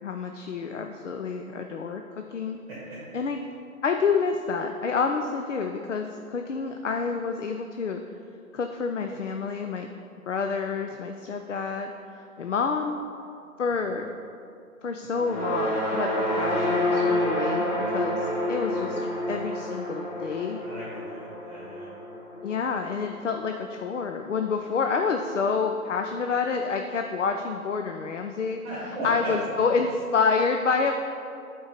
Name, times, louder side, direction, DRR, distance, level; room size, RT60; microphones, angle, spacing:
voice 1, 0.0-2.6 3.1-3.4 3.8-8.0 8.5-9.9 10.3-13.0 13.6-14.1 14.8-20.6 22.4-28.6 29.0-30.9, left 5 dB, 55° left, 5 dB, 0.5 m, -28 dB
sound 1, 15.1-23.5, left 1 dB, 30° left, 1.0 m, -28 dB
voice 2, 20.6-21.9 28.6-29.3, right 1 dB, 15° right, -10 dB, 1.8 m, -37 dB
7.7 x 4.5 x 5.1 m, 2.5 s
figure-of-eight pair, 150°, 45 cm